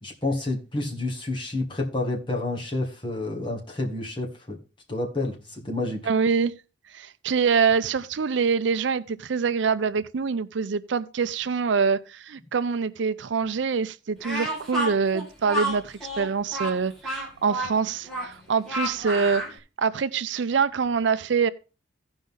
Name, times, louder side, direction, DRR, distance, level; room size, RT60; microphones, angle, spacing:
voice 1, 0.0-4.6 4.9-6.0, left 2 dB, 25° left, 2.1 m, -29 dB
voice 2, 6.0-6.5 6.9-19.4 19.8-21.5, right 5 dB, 75° right, 0.5 m, -25 dB
Speech, 14.2-19.6, equal, ahead, 2.5 m, -30 dB
16.0 x 5.3 x 3.7 m
head